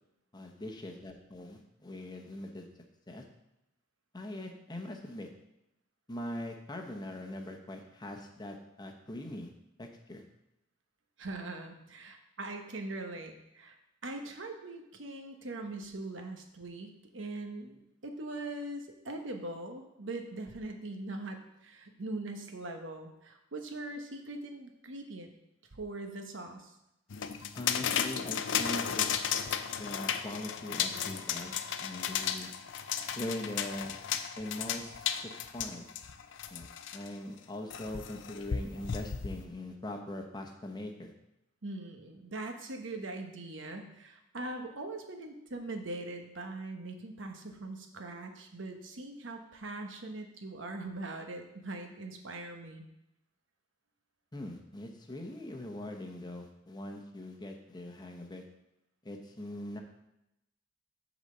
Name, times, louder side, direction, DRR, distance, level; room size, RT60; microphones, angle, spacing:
voice 1, 0.3-2.7 3.1-3.2 4.1-5.3 6.1-9.5 9.8-10.2 27.5-29.1 29.7-32.5 33.2-34.0 34.4-35.9 36.5-41.1 54.3-58.4 59.0-59.8, left 1 dB, 20° left, 3 dB, 0.9 m, -41 dB
voice 2, 11.2-13.7 14.0-25.3 25.7-26.7 41.6-52.8, right 2 dB, 75° right, 5 dB, 1.1 m, -41 dB
sound 1, 27.1-37.1 37.7-39.4, left 8 dB, 70° left, 0.5 m, -34 dB
8.1 x 4.1 x 6.6 m, 0.87 s
head